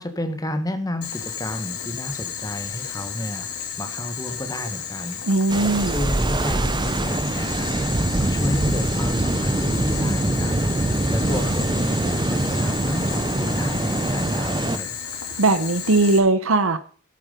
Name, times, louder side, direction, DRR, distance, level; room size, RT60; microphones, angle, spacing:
voice 1, 0.0-15.0, left 1 dB, 15° left, 7 dB, 1.3 m, -31 dB
Boiling, 1.0-16.2, left 7 dB, 90° left, 2.5 m, -33 dB
voice 2, 5.3-5.9 15.4-16.8, right 2 dB, 65° right, 10 dB, 0.9 m, -19 dB
sound 1, 5.5-14.8, right 2 dB, 20° right, 0.5 m, -23 dB
13.0 x 8.8 x 5.3 m, 0.43 s
head